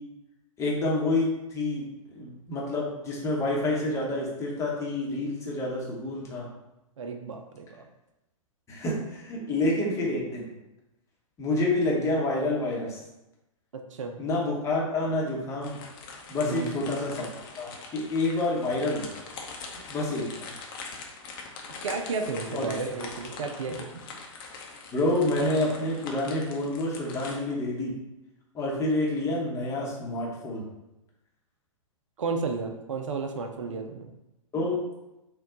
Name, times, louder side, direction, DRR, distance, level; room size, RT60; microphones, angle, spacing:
voice 1, 0.6-1.9 2.1-6.5 8.7-10.4 11.4-13.0 14.2-15.8 16.3-17.3 17.6-19.1 19.9-20.5 22.5-22.7 24.9-28.0 28.5-30.7 33.7-33.8 34.5-34.8, left 2 dB, 15° left, -3 dB, 0.9 m, -28 dB
voice 2, 7.0-7.8 13.7-14.2 16.4-16.7 21.8-23.9 32.2-34.1, right 4 dB, 65° right, 4 dB, 0.5 m, -32 dB
sound 1, 15.6-27.4, left 4 dB, 40° left, 0.7 m, -42 dB
4.2 x 2.3 x 3.8 m, 0.93 s
figure-of-eight pair, 115°, 18 cm